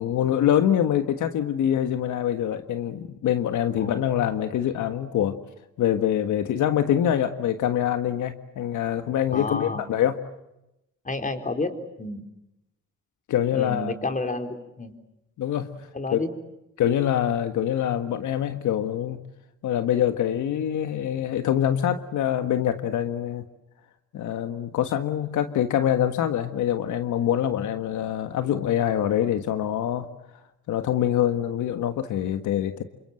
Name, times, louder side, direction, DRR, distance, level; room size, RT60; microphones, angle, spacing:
voice 1, 0.0-5.4 5.8-10.2 13.3-13.9 15.4-16.2 16.8-19.2 19.6-23.4 24.1-30.1 30.7-32.8, left 10 dB, 80° left, 9 dB, 1.7 m, -25 dB
voice 2, 9.3-9.8 11.0-12.2 13.5-14.9 15.9-16.3, left 2 dB, 25° left, 7 dB, 4.1 m, -30 dB
28.5 x 26.0 x 7.8 m, 0.88 s
cardioid pair, 90°, 30 cm